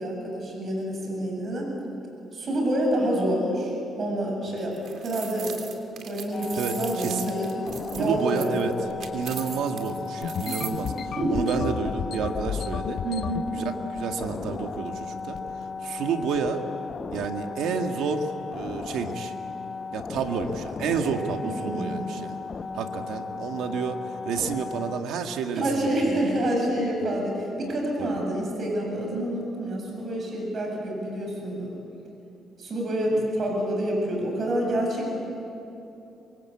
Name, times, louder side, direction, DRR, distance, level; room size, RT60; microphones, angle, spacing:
voice 1, 0.0-1.7 2.3-4.7 5.0-5.5 6.0-7.6 7.9-8.6 10.8-10.9 11.2-11.4 13.0-13.5 21.4-22.0 25.5-31.7 32.6-35.1, right 1 dB, 50° right, 0 dB, 7.9 m, -27 dB
sound 1, 4.6-10.9, right 7 dB, 65° right, 3.0 m, -39 dB
sound 2, 6.3-25.0, left 5 dB, 40° left, 1.1 m, -36 dB
voice 2, 6.6-7.2 8.0-8.7 9.1-13.0 13.5-15.4 15.8-16.7 17.1-19.3 19.9-22.4 22.7-26.2 28.0-28.1 33.1-33.2, right 6 dB, 85° right, 5 dB, 2.0 m, -30 dB
sound 3, 10.2-13.5 14.0-14.5 14.7-15.0 15.3-15.6 16.2-16.5, left 8 dB, 65° left, 0.9 m, -33 dB
27.0 x 23.5 x 8.7 m, 2.8 s
cardioid pair, 90°, 0 cm